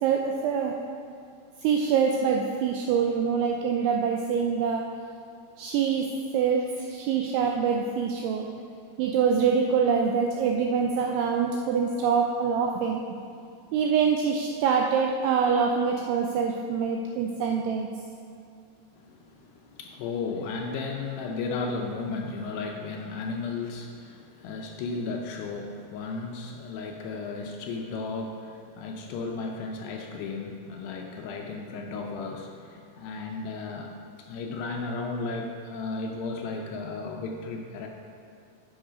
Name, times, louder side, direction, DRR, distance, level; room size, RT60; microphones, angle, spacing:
voice 1, 0.0-0.7 1.6-4.8 5.6-8.5 9.0-13.0 13.7-17.9, right 6 dB, 85° right, 2 dB, 2.3 m, -25 dB
voice 2, 18.9-37.9, left 4 dB, 80° left, 1 dB, 2.5 m, -34 dB
9.0 x 6.3 x 5.0 m, 2.4 s
omnidirectional pair, 5.2 m